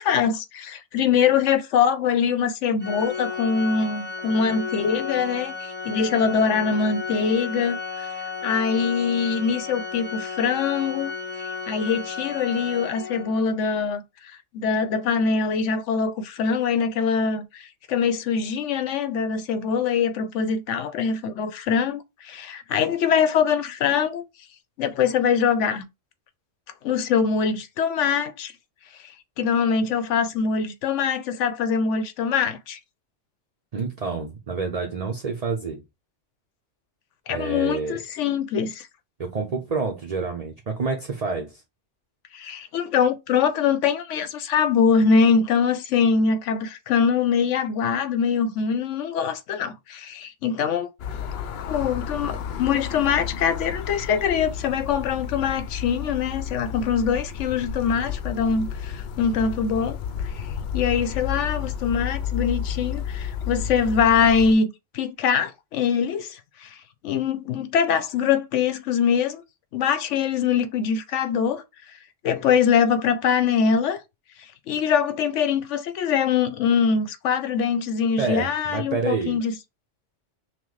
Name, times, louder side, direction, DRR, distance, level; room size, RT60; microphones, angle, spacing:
voice 1, 0.0-11.1 11.4-24.2 24.8-25.8 26.8-28.5 29.4-32.8 37.3-38.9 42.3-50.9 51.2-51.3 51.7-60.0 60.2-60.5 60.7-64.7 64.9-66.8 67.0-69.4 69.7-71.6 72.2-74.0 74.7-79.5, left 6 dB, 85° left, 1.0 m, -23 dB
Organ, 2.8-13.5, left 5 dB, 10° left, 0.8 m, -33 dB
voice 2, 33.7-35.8 37.3-38.0 39.2-41.6 78.2-79.4, right 4 dB, 40° right, 0.7 m, -28 dB
sound 1, 51.0-64.5, left 7 dB, 65° left, 0.7 m, -32 dB
5.8 x 2.1 x 3.2 m
omnidirectional pair, 1.2 m